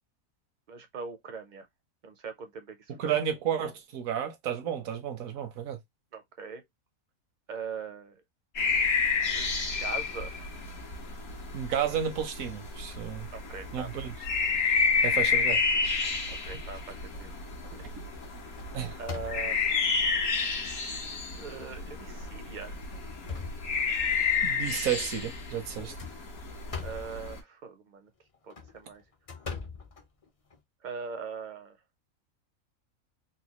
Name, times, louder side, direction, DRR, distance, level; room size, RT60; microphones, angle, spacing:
voice 1, 0.7-1.7 2.0-3.2 6.1-6.6 7.5-8.2 9.3-9.5 9.8-10.4 13.3-13.9 16.3-17.3 17.7-17.8 19.0-19.6 21.3-22.8 25.8-26.2 26.8-28.1 28.4-29.0 30.8-31.8, right 5 dB, 50° right, 0.6 m, -41 dB
voice 2, 2.9-5.8 11.5-13.3 13.7-14.1 15.0-15.6 18.7-19.0 24.4-25.9, right 9 dB, 80° right, 1.2 m, -32 dB
sound 1, 8.6-27.4, left 5 dB, 90° left, 1.7 m, -30 dB
sound 2, 16.9-17.2 17.6-17.9 18.2-19.8 20.5-20.6 21.1-21.2 22.1-22.3 22.8-24.2 25.7-27.2 28.3-30.6, left 4 dB, 45° left, 0.4 m, -42 dB
4.1 x 2.2 x 2.9 m
omnidirectional pair, 1.5 m